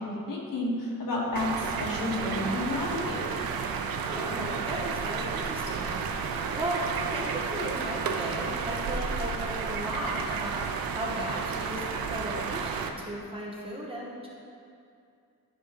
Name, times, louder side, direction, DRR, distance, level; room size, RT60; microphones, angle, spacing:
voice 1, 0.0-3.5, left 2 dB, 65° left, -4 dB, 1.7 m, -31 dB
sound 1, 1.4-12.9, right 5 dB, 75° right, 0.6 m, -32 dB
voice 2, 3.8-6.8 7.1-14.3, right 1 dB, 15° right, -4 dB, 1.1 m, -36 dB
12.0 x 5.5 x 3.1 m, 2.4 s
wide cardioid pair, 140°, 36 cm